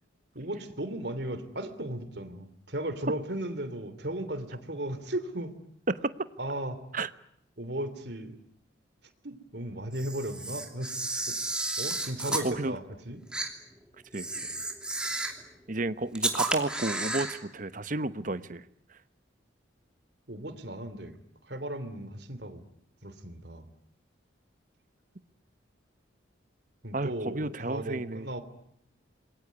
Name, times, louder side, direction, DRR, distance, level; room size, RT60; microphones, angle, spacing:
voice 1, 0.3-5.5 6.4-6.8 7.6-8.4 9.2-11.4 11.8-13.2 20.3-21.1 21.4-22.6 23.0-23.6 26.8-28.4, right 1 dB, 60° right, 11 dB, 3.1 m, -36 dB
Camera, 9.9-12.5 13.3-13.5 14.1-15.4 16.1-17.4, right 2 dB, 5° right, 2.8 m, -32 dB
voice 2, 12.4-12.8 14.1-14.3 15.7-18.6 26.9-28.3, right 2 dB, 40° right, 13 dB, 1.0 m, -31 dB
27.5 x 22.0 x 9.6 m, 0.73 s
head